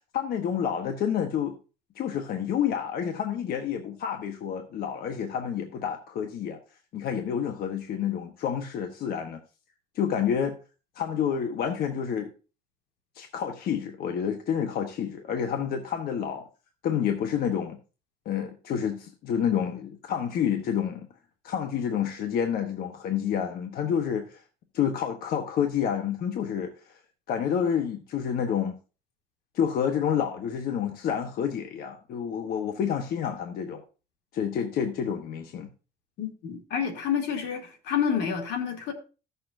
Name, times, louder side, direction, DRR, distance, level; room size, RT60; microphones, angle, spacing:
voice 1, 0.0-1.5 2.0-6.6 6.9-9.4 9.9-10.6 10.9-12.3 13.1-16.5 16.8-17.8 18.2-21.1 21.4-24.4 24.7-26.9 27.3-28.7 29.5-33.8 34.3-35.7, left 8 dB, 65° left, 1.1 m, -29 dB
voice 2, 36.2-38.9, left 7 dB, 80° left, 2.4 m, -29 dB
15.0 x 6.8 x 2.6 m
cardioid pair, 110°, 17 cm